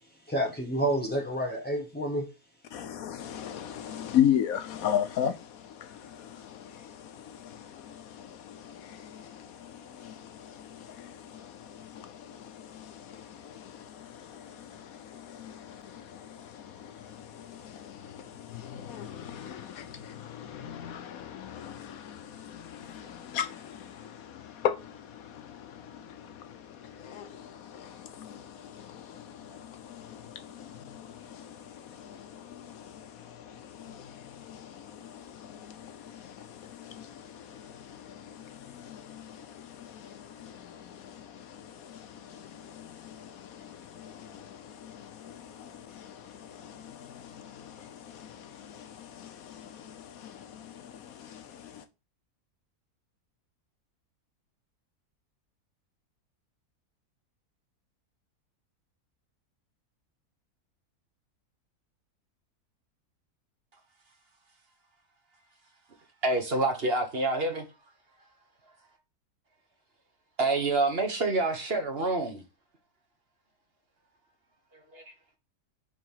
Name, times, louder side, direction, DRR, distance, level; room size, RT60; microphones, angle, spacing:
voice 1, 0.3-2.3, right 1 dB, 10° left, 0.5 m, -29 dB
voice 2, 2.7-51.8, left 9 dB, 70° left, 1.1 m, -38 dB
voice 3, 66.2-67.7 70.4-72.4 74.7-75.0, right 2 dB, 40° right, 1.4 m, -27 dB
5.2 x 4.9 x 5.5 m
omnidirectional pair, 1.6 m